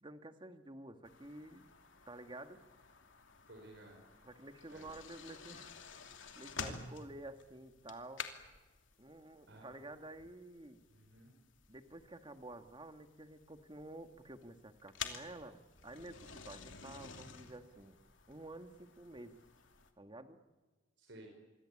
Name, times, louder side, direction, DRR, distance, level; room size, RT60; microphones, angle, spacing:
voice 1, 0.0-1.6 2.1-2.6 4.2-5.7 6.3-8.2 9.0-10.8 11.7-18.0 18.3-19.4 20.0-20.4, right 2 dB, 25° right, 7 dB, 1.8 m, -51 dB
sound 1, 1.0-19.9, left 6 dB, 80° left, 2.7 m, -51 dB
voice 2, 3.5-4.0 4.7-4.9 9.5-9.8 10.9-11.3 21.0-21.3, right 1 dB, 70° right, 1 dB, 5.3 m, -55 dB
27.0 x 23.5 x 8.7 m, 1.3 s
head